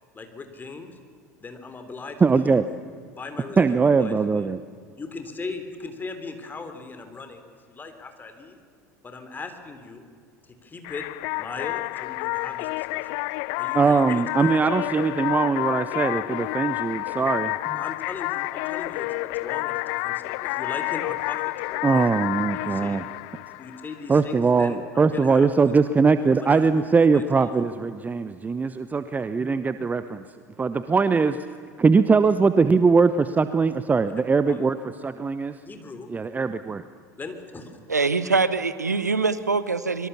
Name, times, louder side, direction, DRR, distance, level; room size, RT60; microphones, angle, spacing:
voice 1, 0.1-1.0 1.4-2.6 3.2-4.5 5.0-8.6 9.0-10.0 10.4-11.0 11.4-13.1 13.5-14.6 17.8-22.1 22.5-23.0 23.6-25.5 26.4-27.5 34.5-34.7 35.7-36.1 37.2-37.8, left 4 dB, 20° left, 8 dB, 3.7 m, -39 dB
voice 2, 2.2-2.7 3.6-4.6 13.7-17.8 21.8-23.0 24.1-30.2 30.6-31.3 31.8-34.8 35.0-35.5 36.1-36.8, right 4 dB, 20° right, 12 dB, 0.9 m, -21 dB
sound 1, 10.8-24.3, left 24 dB, 55° left, 0.7 m, -30 dB
voice 3, 37.9-40.1, right 4 dB, 90° right, 14 dB, 1.0 m, -23 dB
25.0 x 23.5 x 7.1 m, 2.1 s
figure-of-eight pair, 75°, 9 cm